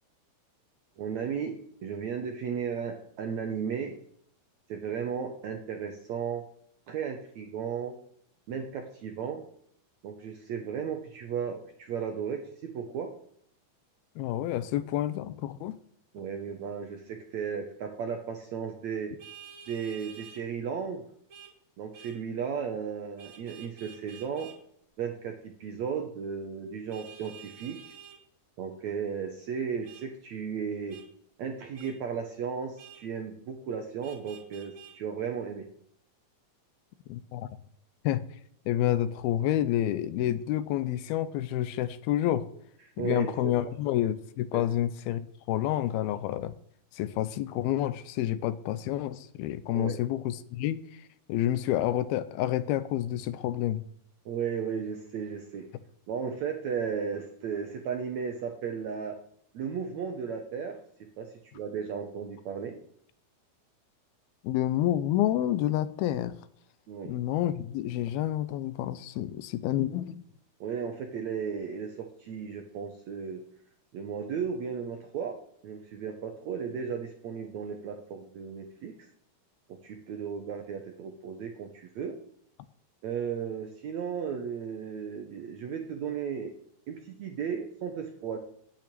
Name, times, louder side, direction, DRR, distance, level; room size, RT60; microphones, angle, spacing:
voice 1, 1.0-4.0 4.7-6.5 6.9-8.0 8.5-9.4 10.0-13.1 16.1-19.1 19.7-21.0 21.8-24.5 25.0-28.0 28.6-31.0 31.4-35.7 43.0-43.5 44.5-44.6 49.7-50.0 54.3-55.7 56.1-59.2 59.5-62.8 66.9-67.1 70.6-73.4 73.9-75.4 75.6-79.1 79.7-82.2 83.0-86.5 86.9-88.4, right 7 dB, 70° right, 4 dB, 1.7 m, -35 dB
voice 2, 14.2-15.8 37.1-37.5 38.0-38.2 38.7-42.5 43.0-46.5 46.9-51.0 51.3-53.8 64.4-66.3 67.1-70.2, left 12 dB, 80° left, 13 dB, 2.5 m, -29 dB
Vehicle horn car horn honking, 19.2-20.4 21.3-21.5 21.9-22.2 23.2-24.6 26.9-28.2 29.8-30.0 30.9-31.1 31.7-31.9 32.8-33.0 34.0-34.9, right 8 dB, 35° right, 3.0 m, -49 dB
8.8 x 8.7 x 9.0 m, 0.66 s
omnidirectional pair, 4.5 m